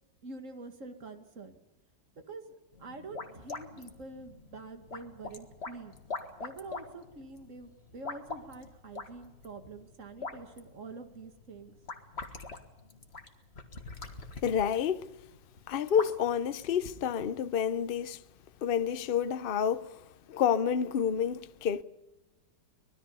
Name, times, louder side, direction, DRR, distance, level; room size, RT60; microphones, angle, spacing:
voice 1, 0.2-1.6 2.3-2.5 2.8-6.0 6.4-11.7, right 3 dB, 45° right, 2.3 m, -46 dB
sound 1, 2.7-17.3, left 3 dB, 35° left, 2.0 m, -44 dB
voice 2, 14.4-15.1 15.7-18.2 18.6-19.9 20.3-21.8, left 8 dB, 55° left, 0.6 m, -29 dB
25.0 x 20.5 x 5.5 m
omnidirectional pair, 2.0 m